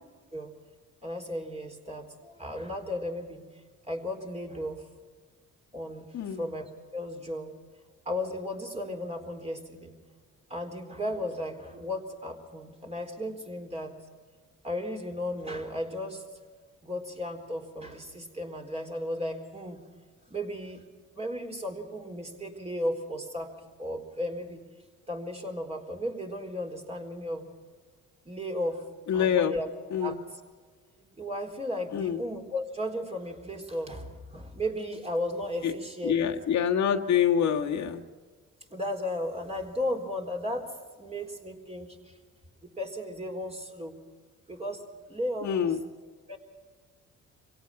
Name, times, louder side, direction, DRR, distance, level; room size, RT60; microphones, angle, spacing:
voice 1, 1.0-3.4 3.9-4.9 5.7-6.6 6.9-7.5 8.1-10.0 10.5-13.9 14.6-16.2 16.8-19.8 20.3-20.8 21.1-23.5 23.8-24.6 25.1-27.4 28.2-28.8 29.1-29.7 30.0-30.2 31.0-36.1 38.7-40.7 41.0-42.2 42.6-44.0 44.5-44.8 45.1-45.8 46.3-46.4, left 1 dB, 20° right, 2 dB, 4.2 m, -35 dB
voice 2, 29.1-29.5 29.9-30.2 31.9-32.2 35.6-35.7 36.0-38.0 45.4-45.8, left 8 dB, 65° left, 2 dB, 1.6 m, -26 dB
25.5 x 17.5 x 5.9 m, 1.5 s
cardioid pair, 90°, 30 cm